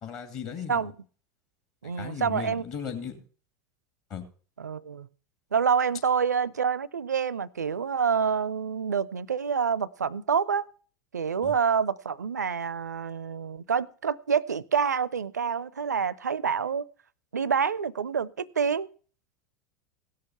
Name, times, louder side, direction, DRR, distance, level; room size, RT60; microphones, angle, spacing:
voice 1, 0.0-0.9 2.0-3.2 4.1-4.2 11.4-11.5, left 7 dB, 40° left, 2.4 m, -36 dB
voice 2, 1.8-2.6 4.6-5.1 5.5-10.6 11.1-16.9 17.3-18.9, right 6 dB, 75° right, 0.5 m, -27 dB
16.5 x 6.6 x 5.6 m
figure-of-eight pair, 80°, 9 cm